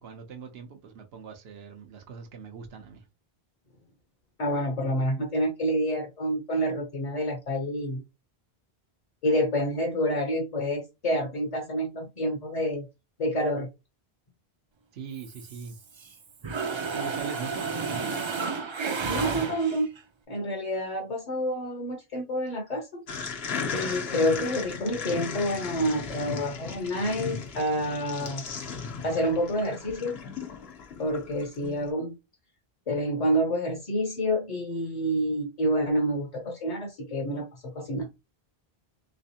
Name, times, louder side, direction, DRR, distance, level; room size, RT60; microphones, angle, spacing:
voice 1, 0.0-3.0 14.9-15.8 16.9-18.1, right 6 dB, 80° right, 0.9 m, -41 dB
voice 2, 4.4-8.0 9.2-12.9 13.2-13.7 19.1-19.9 20.3-23.0 23.7-28.4 29.0-30.2 31.0-32.2 32.9-38.1, equal, 45° left, 0.7 m, -28 dB
Mechanisms, 15.2-16.1 16.4-20.0, right 5 dB, 45° right, 0.4 m, -32 dB
sound 1, 23.1-31.7, left 5 dB, 80° left, 1.1 m, -36 dB
3.3 x 3.2 x 2.8 m
omnidirectional pair, 1.0 m